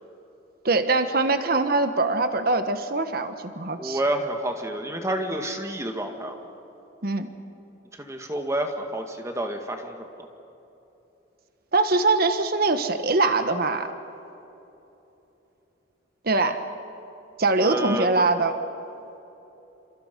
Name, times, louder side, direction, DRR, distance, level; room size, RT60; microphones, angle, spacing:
voice 1, 0.6-4.0 7.0-7.3 11.7-13.9 16.2-16.6 17.4-18.5, right 3 dB, 55° right, 8 dB, 1.4 m, -23 dB
voice 2, 3.8-6.4 8.0-10.3 17.6-18.3, right 1 dB, 15° right, 4 dB, 1.9 m, -29 dB
29.5 x 27.5 x 5.4 m, 3.0 s
head